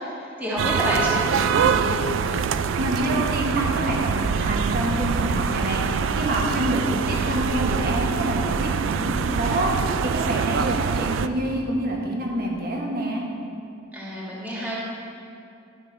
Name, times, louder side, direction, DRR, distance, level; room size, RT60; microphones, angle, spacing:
voice 1, 0.0-2.0 6.8-7.4 13.9-14.7, equal, 10° right, -7 dB, 1.5 m, -29 dB
sound 1, 0.6-11.3, right 6 dB, 65° right, 0.3 m, -24 dB
voice 2, 2.7-13.3, right 1 dB, 50° right, -1 dB, 1.4 m, -27 dB
12.0 x 5.9 x 4.6 m, 2.7 s
head